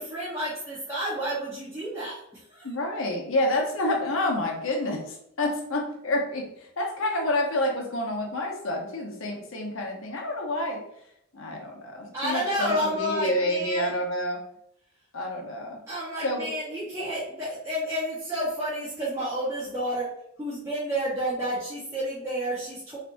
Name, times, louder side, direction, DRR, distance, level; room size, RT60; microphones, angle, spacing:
voice 1, 0.0-2.7 12.1-13.9 15.9-20.1 20.4-23.0, equal, 15° right, -10 dB, 1.0 m, -30 dB
voice 2, 2.6-10.8 11.3-14.4 15.1-15.8 16.2-16.5, left 1 dB, 70° left, 1 dB, 1.0 m, -28 dB
4.1 x 3.4 x 2.6 m, 0.77 s
head